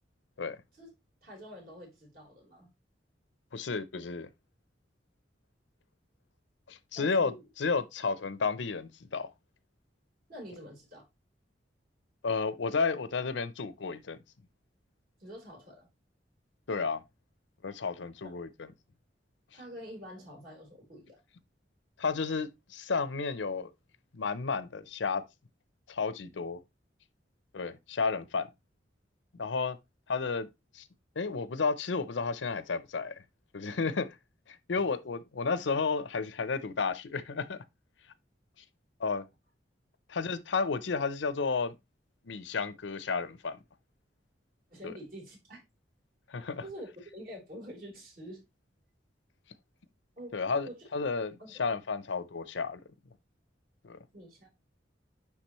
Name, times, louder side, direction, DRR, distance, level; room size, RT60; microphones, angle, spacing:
voice 1, 1.2-2.7 6.9-7.4 10.3-11.1 15.2-15.9 18.2-18.4 19.5-21.2 44.7-45.6 46.6-48.4 50.2-50.4 50.6-50.9 51.4-51.6 54.1-54.5, equal, 55° right, 4.1 m, -47 dB
voice 2, 3.5-4.3 6.7-9.3 12.2-14.2 16.7-17.0 17.6-18.7 22.0-23.7 24.1-25.2 25.9-26.6 27.5-28.5 29.3-29.8 30.1-30.5 30.7-30.8 31.2-33.1 33.5-34.2 34.5-37.6 39.0-39.2 40.1-41.7 42.3-43.6 44.8-44.9 46.3-46.6 50.3-52.8 53.8-54.0, left 4 dB, 80° left, 0.6 m, -32 dB
9.9 x 3.7 x 3.0 m
head